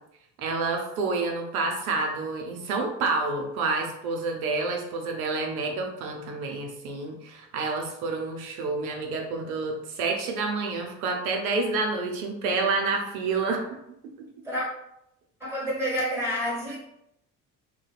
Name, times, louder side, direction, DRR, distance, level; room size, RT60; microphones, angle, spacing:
voice 1, 0.4-13.6, right 3 dB, 90° right, 2 dB, 0.5 m, -28 dB
voice 2, 15.4-16.8, equal, 5° right, -6 dB, 1.3 m, -28 dB
2.7 x 2.0 x 2.3 m, 0.80 s
hypercardioid pair, 55°, 42 cm